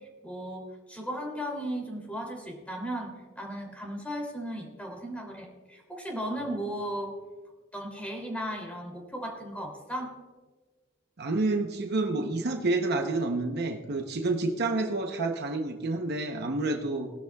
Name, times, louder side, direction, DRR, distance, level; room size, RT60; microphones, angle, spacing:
voice 1, 0.2-0.6 0.9-7.1 7.7-10.1, equal, 5° left, 0 dB, 2.8 m, -36 dB
voice 2, 11.2-17.1, right 2 dB, 55° right, 4 dB, 0.8 m, -29 dB
19.5 x 12.5 x 2.3 m, 1.3 s
head